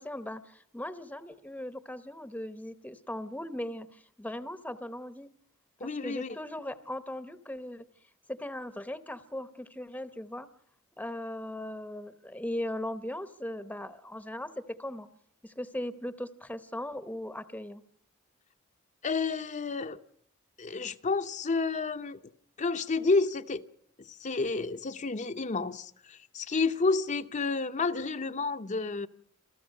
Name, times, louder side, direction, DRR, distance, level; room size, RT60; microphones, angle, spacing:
voice 1, 0.0-5.3 5.8-7.9 8.3-10.5 11.0-15.1 15.4-17.8, left 1 dB, 5° left, 0.8 m, -38 dB
voice 2, 5.8-6.4 19.0-20.0 20.6-22.2 22.6-23.7 24.0-29.1, left 3 dB, 35° left, 0.7 m, -30 dB
27.5 x 14.5 x 6.5 m
head